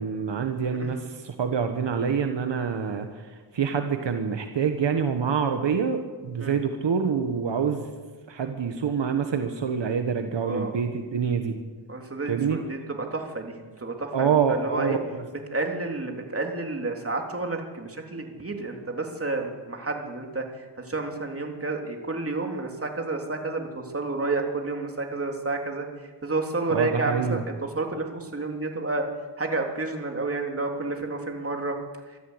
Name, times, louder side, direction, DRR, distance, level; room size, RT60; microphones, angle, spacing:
voice 1, 0.0-3.1 3.5-7.9 8.3-11.5 12.3-12.6 14.1-15.2 26.7-27.4, right 6 dB, 75° right, 6 dB, 1.6 m, -26 dB
voice 2, 10.4-10.8 11.9-15.0 15.5-20.4 20.8-25.9 26.2-29.0 29.4-31.8, right 3 dB, 30° right, 2 dB, 3.3 m, -30 dB
24.5 x 14.0 x 8.1 m, 1.4 s
wide cardioid pair, 100°, 44 cm